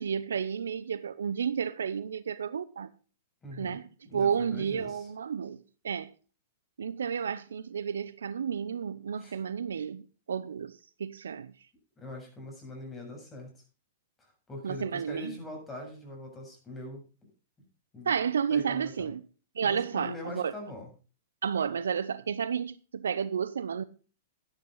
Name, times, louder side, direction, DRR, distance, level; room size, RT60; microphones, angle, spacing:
voice 1, 0.0-2.9 3.6-6.1 6.8-11.5 14.6-15.4 18.0-19.2 19.5-20.5 21.4-23.8, right 7 dB, 75° right, 0.7 m, -31 dB
voice 2, 3.4-3.8 4.1-5.1 9.2-9.4 12.0-13.6 14.2-17.0 17.9-18.1 18.5-19.1 19.6-20.9, left 1 dB, 20° left, 7.1 m, -42 dB
12.5 x 10.5 x 3.9 m
hypercardioid pair, 105°, 0 cm